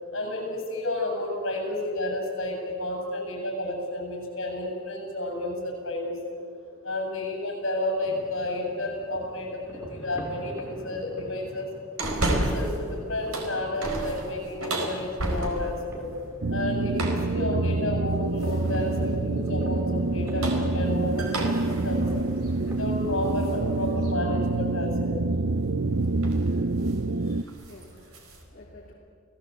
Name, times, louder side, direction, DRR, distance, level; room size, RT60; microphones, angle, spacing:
voice 1, 0.1-6.3 6.8-11.7 12.2-16.1 16.5-21.5 21.8-22.0 22.7-25.2, left 1 dB, 60° left, 2 dB, 7.5 m, -31 dB
sound 1, 8.0-22.9, equal, 10° right, 3.3 m, -44 dB
sound 2, 12.0-12.8 13.2-15.9 16.9-17.4 18.4-18.8 20.1-23.6 24.0-24.1 25.7-25.9 26.2-26.5 26.8-27.0 27.4-28.4, right 1 dB, 90° right, 4.5 m, -32 dB
sound 3, 16.4-27.4, right 2 dB, 55° right, 0.6 m, -26 dB
voice 2, 27.2-28.9, left 2 dB, 40° left, -4 dB, 2.9 m, -53 dB
29.0 x 17.5 x 8.4 m, 2.2 s
head